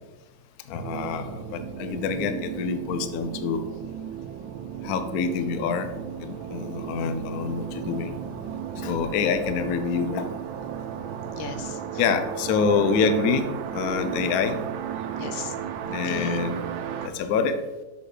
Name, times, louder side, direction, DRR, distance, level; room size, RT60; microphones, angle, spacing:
voice 1, 0.7-3.6 4.8-5.9 6.2-8.1 8.8-10.3 12.0-13.4 13.7-14.6 15.9-16.6 17.1-17.6, left 5 dB, 65° left, 9 dB, 1.0 m, -26 dB
sound 1, 0.8-17.1, right 8 dB, 80° right, 1.3 m, -35 dB
voice 2, 11.4-12.0 15.2-15.5 15.9-16.4 17.0-17.1, left 6 dB, 80° left, 7 dB, 1.5 m, -36 dB
6.7 x 6.5 x 4.9 m, 1.1 s
omnidirectional pair, 2.1 m